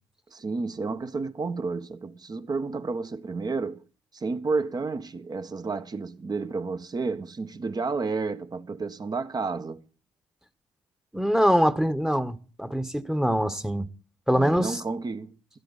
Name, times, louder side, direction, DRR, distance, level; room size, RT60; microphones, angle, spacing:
voice 1, 0.3-3.8 4.1-9.8 14.3-15.3, right 4 dB, 40° right, 1.6 m, -31 dB
voice 2, 11.1-13.9 14.3-14.8, equal, 5° right, 1.4 m, -24 dB
16.0 x 13.0 x 4.2 m
hypercardioid pair, 45°, 11 cm